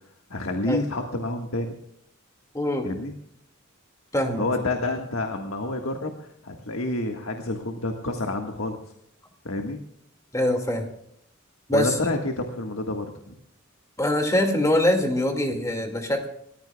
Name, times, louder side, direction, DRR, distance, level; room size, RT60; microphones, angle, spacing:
voice 1, 0.3-1.8 2.8-3.1 4.4-8.8 9.5-9.8 11.7-13.3, left 2 dB, 75° left, 3 dB, 1.7 m, -29 dB
voice 2, 2.5-2.9 4.1-4.4 10.3-10.9 11.7-12.0 14.0-16.3, left 1 dB, 15° left, 3 dB, 2.2 m, -23 dB
29.0 x 15.0 x 2.4 m, 0.74 s
head